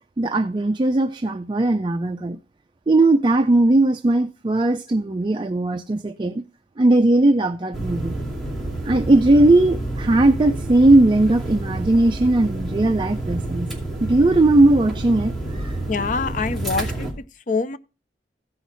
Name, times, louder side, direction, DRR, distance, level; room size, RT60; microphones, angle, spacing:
voice 1, 0.2-2.4 2.9-6.4 6.8-8.2 8.8-13.7 14.0-15.8, right 2 dB, 25° right, 0.4 m, -18 dB
sound 1, 7.7-17.1, right 2 dB, ahead, 2.6 m, -29 dB
voice 2, 15.9-17.1 17.5-17.8, left 4 dB, 45° left, 0.5 m, -24 dB
15.0 x 5.8 x 4.0 m
head